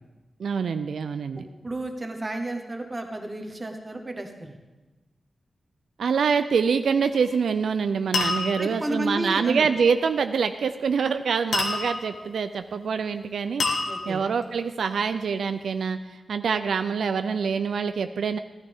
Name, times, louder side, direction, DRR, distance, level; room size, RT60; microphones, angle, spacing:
voice 1, 0.4-1.5 6.0-13.6 14.1-18.4, right 6 dB, 80° right, 9 dB, 0.4 m, -25 dB
voice 2, 1.4-4.5 8.6-9.7 13.8-14.2, right 1 dB, 20° right, 4 dB, 1.2 m, -32 dB
sound 1, 7.1-7.5 8.1-8.9 11.5-12.2 13.6-14.4, left 3 dB, 90° left, 1.6 m, -28 dB
15.5 x 13.0 x 3.6 m, 1.1 s
wide cardioid pair, 170°, 0 cm